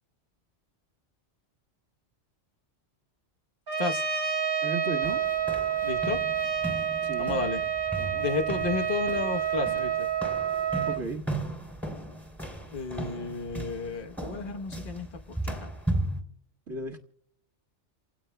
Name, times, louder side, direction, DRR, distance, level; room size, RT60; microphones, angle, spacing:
Trumpet, 3.7-11.0, right 8 dB, 55° right, 1.2 m, -29 dB
voice 1, 4.6-5.2 7.0-7.4 8.0-8.3 10.8-11.2 16.7-17.0, right 2 dB, 70° right, -4 dB, 1.6 m, -35 dB
sound 1, 5.0-16.2, right 2 dB, ahead, 2.8 m, -36 dB
voice 2, 5.8-6.2 7.2-7.6 8.2-10.1 12.7-15.7, left 4 dB, 45° left, 4 dB, 1.2 m, -32 dB
29.5 x 17.5 x 2.2 m, 0.65 s
omnidirectional pair, 1.2 m